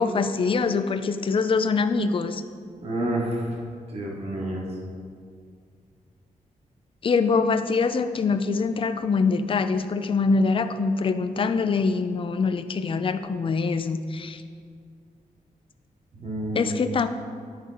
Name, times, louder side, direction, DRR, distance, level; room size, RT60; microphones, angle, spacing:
voice 1, 0.0-2.4 7.0-14.4 16.6-17.1, left 4 dB, 40° left, 10 dB, 0.4 m, -24 dB
voice 2, 2.8-3.5 3.9-4.6 16.2-16.8, right 1 dB, 45° right, -2 dB, 1.4 m, -29 dB
11.0 x 5.1 x 3.9 m, 2.2 s
wide cardioid pair, 135°, 14 cm